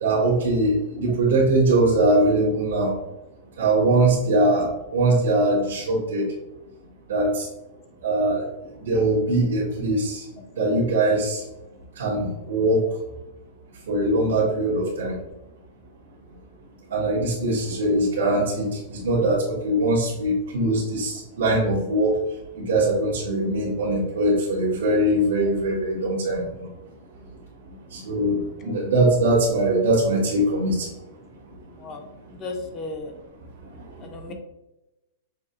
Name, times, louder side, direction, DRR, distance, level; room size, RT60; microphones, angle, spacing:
voice 1, 0.0-2.9 3.6-6.2 7.1-7.5 8.0-8.4 8.8-10.2 10.6-11.4 12.0-12.8 13.9-15.2 16.9-22.2 22.6-26.7 27.9-30.9, right 2 dB, 90° right, -6 dB, 1.2 m, -22 dB
voice 2, 32.3-33.1 34.0-34.3, left 3 dB, 25° left, 4 dB, 0.7 m, -34 dB
5.8 x 2.8 x 2.5 m, 0.96 s
supercardioid pair, 155°, 0 cm